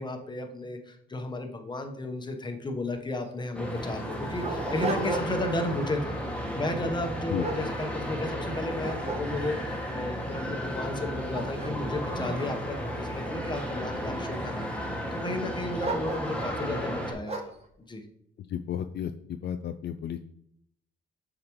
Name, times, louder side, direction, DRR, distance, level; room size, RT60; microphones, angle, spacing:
voice 1, 0.0-6.2 6.6-17.5 17.9-18.0, left 2 dB, 20° left, 5 dB, 1.0 m, -34 dB
Dog, 3.2-3.3 3.9-5.6 6.0-6.3 6.9-8.4 8.8-9.7 10.3-10.4 10.9-13.2 13.9-14.5 15.8-16.6 17.3-17.6, right 3 dB, 30° right, 1.4 m, -36 dB
sound 1, 3.5-17.1, equal, 5° left, 1.3 m, -34 dB
voice 2, 18.5-20.2, left 9 dB, 60° left, 9 dB, 0.4 m, -33 dB
7.2 x 4.9 x 3.0 m, 0.69 s
cardioid pair, 90°, 20 cm